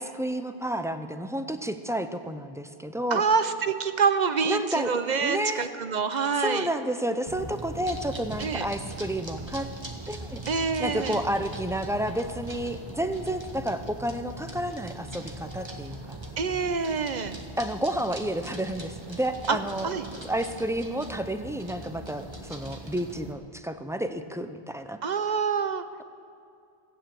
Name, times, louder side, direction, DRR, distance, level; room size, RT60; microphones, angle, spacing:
voice 1, 0.0-3.2 4.4-5.7 6.3-9.7 10.1-16.2 17.6-19.9 20.2-25.0, right 1 dB, 5° right, 9 dB, 0.4 m, -31 dB
voice 2, 3.1-6.7 8.4-8.7 10.5-11.2 16.4-17.4 19.5-19.6 19.8-20.0 25.0-25.8, right 5 dB, 50° right, 11 dB, 0.8 m, -26 dB
sound 1, 7.3-23.3, right 2 dB, 25° right, 1.3 m, -40 dB
15.5 x 9.0 x 7.6 m, 2.5 s
omnidirectional pair, 1.1 m